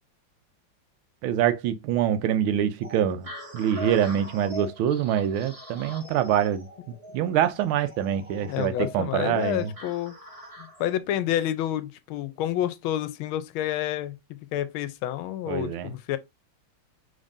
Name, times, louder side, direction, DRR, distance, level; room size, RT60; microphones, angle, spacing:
voice 1, 1.2-6.7 7.1-9.7 15.5-15.9, right 10 dB, 80° right, 1.4 m, -25 dB
sound 1, 2.8-11.0, equal, 20° right, 1.0 m, -42 dB
voice 2, 8.5-10.2 10.6-14.1 14.5-16.2, left 12 dB, 80° left, 1.4 m, -29 dB
5.2 x 3.6 x 2.6 m
omnidirectional pair, 2.3 m